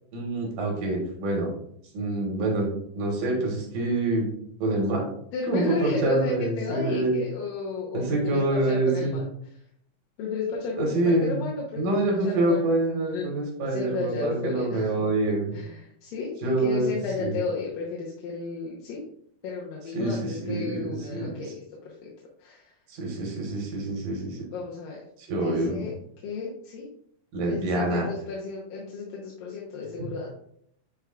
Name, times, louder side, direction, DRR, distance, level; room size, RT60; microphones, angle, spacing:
voice 1, 0.1-1.5 1.9-2.7 2.9-4.3 4.6-5.0 5.5-7.1 7.9-9.2 10.8-11.4 11.8-15.6 16.4-16.9 17.2-17.3 19.9-21.3 22.9-24.4 25.2-25.8 27.3-28.1, right 2 dB, 75° right, -1 dB, 3.2 m, -26 dB
voice 2, 5.3-9.3 10.2-13.3 13.7-14.9 15.5-19.0 19.4-21.6 21.9-22.1 22.4-22.7 24.5-25.9 26.2-26.9 27.5-30.3, left 4 dB, 90° left, -4 dB, 2.7 m, -33 dB
9.3 x 4.7 x 2.4 m, 0.68 s
omnidirectional pair, 3.9 m